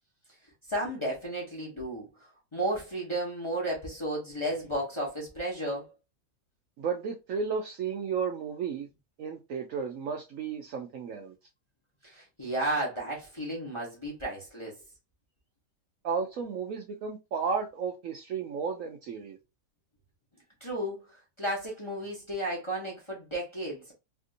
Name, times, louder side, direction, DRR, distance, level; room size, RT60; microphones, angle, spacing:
voice 1, 0.7-2.1 2.5-5.9 12.0-14.7 20.6-23.9, right 1 dB, 20° left, 0.9 m, -33 dB
voice 2, 6.8-8.9 9.2-11.3 16.0-19.4, right 6 dB, 70° right, 0.8 m, -33 dB
3.4 x 2.6 x 2.5 m
omnidirectional pair, 1.8 m